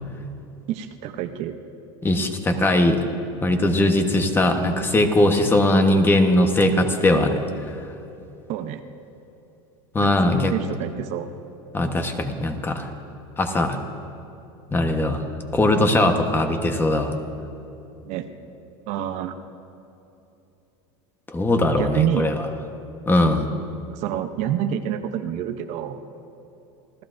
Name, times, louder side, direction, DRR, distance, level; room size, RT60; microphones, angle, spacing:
voice 1, 0.7-1.5 8.5-8.8 10.0-11.3 18.0-18.3 18.9-19.4 21.7-22.3 23.9-26.0, right 10 dB, 55° right, 8 dB, 0.7 m, -28 dB
voice 2, 2.0-3.0 3.4-7.4 9.9-10.5 11.7-12.9 13.4-13.8 14.7-15.2 15.5-17.1 21.3-22.5 23.1-23.5, left 1 dB, 15° left, 5 dB, 1.1 m, -20 dB
27.0 x 14.0 x 2.6 m, 2.9 s
supercardioid pair, 125°, 14 cm